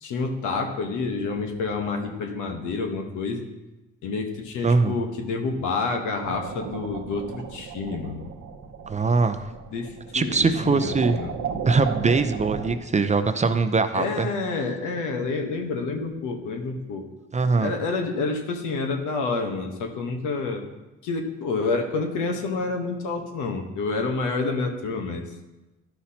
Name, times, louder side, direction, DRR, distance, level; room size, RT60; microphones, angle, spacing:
voice 1, 0.0-3.5 4.0-8.3 9.7-11.3 13.9-17.1 17.6-20.6 21.0-25.2, left 3 dB, 85° left, 3 dB, 1.1 m, -28 dB
voice 2, 4.6-5.0 8.9-9.4 10.1-11.2 11.7-14.3 17.3-17.7, right 4 dB, 25° right, 8 dB, 0.5 m, -22 dB
sound 1, 6.2-12.7, right 6 dB, 65° right, 0.9 m, -35 dB
11.5 x 5.8 x 2.8 m, 1.0 s
cardioid pair, 90°, 30 cm